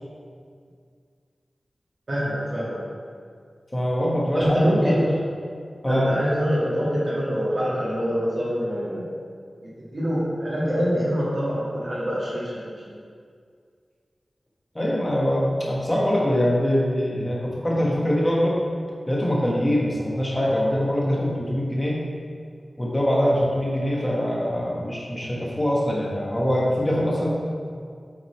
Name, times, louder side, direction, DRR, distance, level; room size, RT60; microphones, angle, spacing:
voice 1, 2.1-2.8 4.3-5.1 5.9-9.1 9.6-13.0, equal, 55° right, -8 dB, 1.6 m, -25 dB
voice 2, 3.7-5.0 5.8-6.1 14.7-18.6 19.1-22.0 22.8-27.3, equal, 15° left, -4 dB, 1.3 m, -23 dB
7.4 x 3.9 x 4.5 m, 2.1 s
wide cardioid pair, 90°, 0 cm